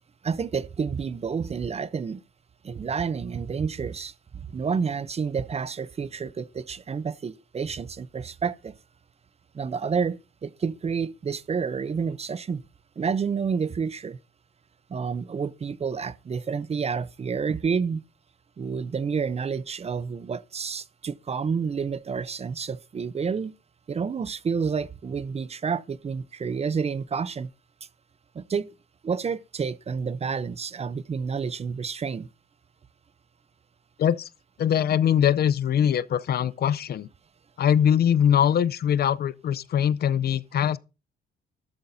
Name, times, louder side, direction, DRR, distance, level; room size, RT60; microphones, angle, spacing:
voice 1, 0.2-2.2 2.6-8.7 9.5-12.6 13.0-14.2 14.9-18.0 18.6-23.5 23.9-27.5 28.3-28.7 29.0-32.3, right 6 dB, 30° right, 0.6 m, -29 dB
voice 2, 34.6-37.1 37.6-40.8, left 9 dB, 55° left, 0.5 m, -22 dB
13.0 x 12.5 x 2.6 m
cardioid pair, 90°, 20 cm